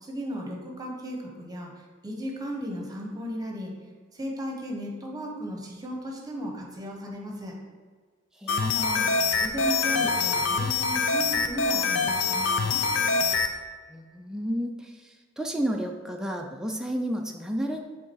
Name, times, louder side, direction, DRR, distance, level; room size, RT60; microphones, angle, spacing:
voice 1, 0.0-1.7 2.0-3.7 4.1-7.5 8.7-9.1 9.3-12.8, equal, 20° right, 0 dB, 1.0 m, -35 dB
voice 2, 8.3-8.9 13.9-17.9, equal, 5° right, 1 dB, 0.4 m, -32 dB
sound 1, 8.5-13.5, left 4 dB, 75° left, 0.5 m, -25 dB
7.3 x 3.6 x 4.6 m, 1.5 s
head